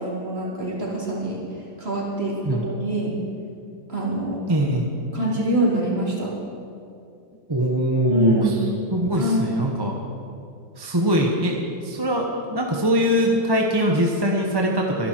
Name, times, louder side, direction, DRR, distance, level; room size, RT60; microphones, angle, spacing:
voice 1, 0.0-1.4 1.8-3.1 3.9-4.5 5.1-6.3 8.1-8.5 9.2-9.4, right 1 dB, 30° right, -5 dB, 3.7 m, -25 dB
voice 2, 4.5-4.9 7.5-8.6 8.9-9.9 10.8-11.6 11.8-15.1, equal, 15° right, 0 dB, 1.0 m, -22 dB
25.0 x 11.0 x 4.6 m, 2.5 s
omnidirectional pair, 2.0 m